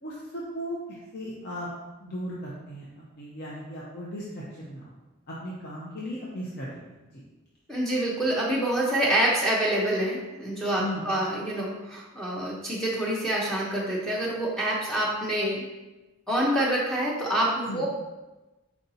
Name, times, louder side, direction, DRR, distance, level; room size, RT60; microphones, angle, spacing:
voice 1, 0.0-1.7 2.0-2.8 3.1-4.9 5.3-7.2 10.8-11.1 17.7-17.8, equal, 50° left, -6 dB, 0.7 m, -37 dB
voice 2, 7.7-15.6 16.3-17.9, right 1 dB, ahead, -5 dB, 0.6 m, -26 dB
4.6 x 2.7 x 4.0 m, 1.1 s
head